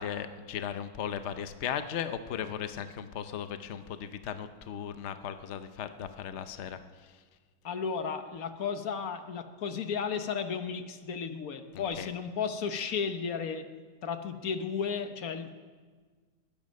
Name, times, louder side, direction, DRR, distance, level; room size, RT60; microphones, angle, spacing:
voice 1, 0.0-7.1 11.7-12.1, left 8 dB, 85° left, 10 dB, 0.6 m, -37 dB
voice 2, 7.6-13.6 14.0-15.5, left 6 dB, 50° left, 8 dB, 1.3 m, -34 dB
20.5 x 10.5 x 6.4 m, 1.5 s
omnidirectional pair, 2.2 m